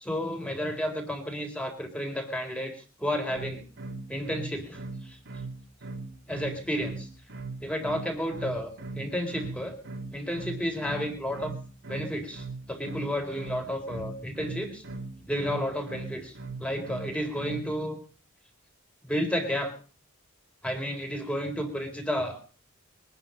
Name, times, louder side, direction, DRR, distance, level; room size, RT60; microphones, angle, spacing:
voice 1, 0.0-3.6 4.1-5.2 6.3-7.1 7.6-9.8 10.1-11.5 11.9-14.8 15.3-16.3 16.6-18.0 19.0-19.8 20.6-22.4, equal, 5° left, 4 dB, 3.8 m, -32 dB
sound 1, 3.3-17.7, right 3 dB, 55° right, 2.7 m, -39 dB
23.0 x 10.5 x 5.3 m, 0.37 s
head